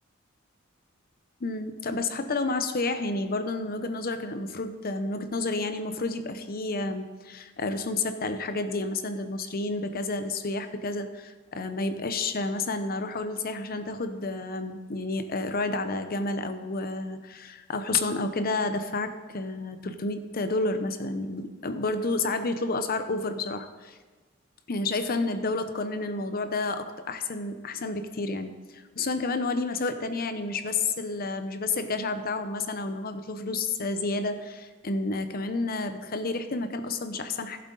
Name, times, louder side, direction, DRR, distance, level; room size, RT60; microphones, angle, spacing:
voice 1, 1.4-24.0 24.7-37.6, left 3 dB, 45° left, 9 dB, 0.8 m, -30 dB
15.0 x 7.8 x 3.9 m, 1.3 s
head